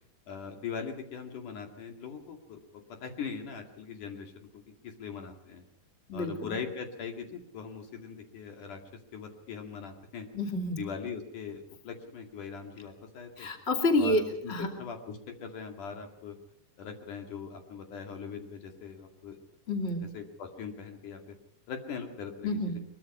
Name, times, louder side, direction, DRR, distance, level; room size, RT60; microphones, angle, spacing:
voice 1, 0.3-2.6 3.0-5.6 6.1-8.8 9.1-10.3 10.8-13.5 14.0-16.4 16.8-19.4 20.0-21.4 21.7-22.8, left 6 dB, 70° left, 4 dB, 3.8 m, -41 dB
voice 2, 6.1-6.5 10.3-10.8 13.4-14.7 19.7-20.0 22.4-22.8, left 1 dB, 20° left, 4 dB, 2.4 m, -28 dB
22.5 x 22.5 x 5.5 m, 0.72 s
omnidirectional pair, 3.8 m